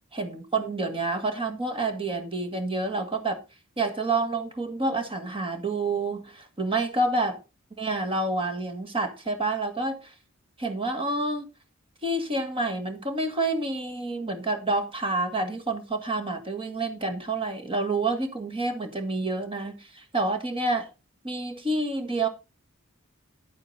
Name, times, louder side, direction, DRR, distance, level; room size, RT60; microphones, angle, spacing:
voice 1, 0.1-3.4 3.8-7.4 7.8-10.1 10.6-11.4 12.0-20.9 21.2-22.3, right 2 dB, 25° right, 1.9 m, -28 dB
10.5 x 8.8 x 4.0 m
head